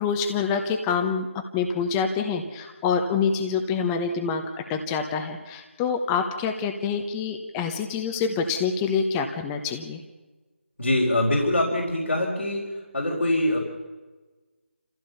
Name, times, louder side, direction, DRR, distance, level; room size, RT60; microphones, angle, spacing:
voice 1, 0.0-10.0, left 6 dB, 15° left, 6 dB, 1.0 m, -26 dB
voice 2, 10.8-12.6 12.9-13.6, left 1 dB, 80° left, -4 dB, 4.4 m, -23 dB
27.0 x 15.5 x 7.0 m, 1.2 s
figure-of-eight pair, 160°, 7 cm